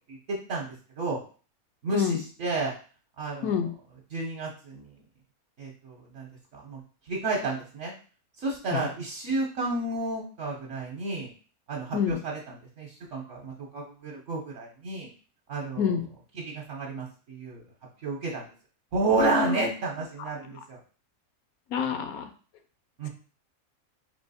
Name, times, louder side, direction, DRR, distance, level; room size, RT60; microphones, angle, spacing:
voice 1, 0.1-1.2 1.8-2.7 3.2-3.6 4.1-4.9 5.6-6.8 7.1-7.9 8.4-11.3 11.7-12.4 12.8-15.1 15.5-15.9 16.5-17.6 18.0-18.5 18.9-20.8 23.0-23.1, right 3 dB, 60° right, -2 dB, 1.1 m, -31 dB
voice 2, 19.2-19.5 21.7-22.3, left 7 dB, 80° left, 7 dB, 1.1 m, -27 dB
3.5 x 3.0 x 4.1 m, 0.39 s
omnidirectional pair, 1.5 m